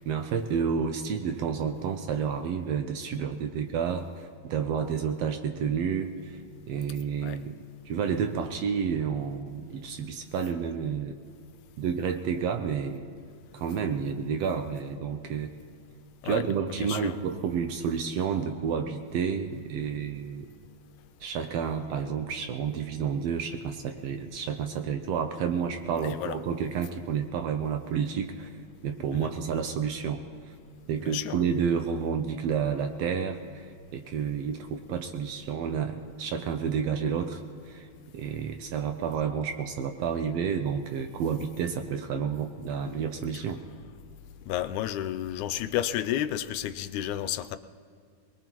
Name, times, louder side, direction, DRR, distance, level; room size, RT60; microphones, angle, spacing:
voice 1, 0.0-6.4 6.7-7.5 7.8-11.2 11.8-13.1 13.5-15.5 16.2-20.5 21.2-28.5 28.8-30.2 30.9-37.9 38.1-43.6, right 7 dB, 70° right, 1.6 m, -30 dB
voice 2, 16.8-17.2 26.0-26.4 29.1-29.3 31.0-31.4 44.5-47.6, left 11 dB, 85° left, 2.1 m, -31 dB
23.0 x 20.5 x 3.0 m
omnidirectional pair, 3.4 m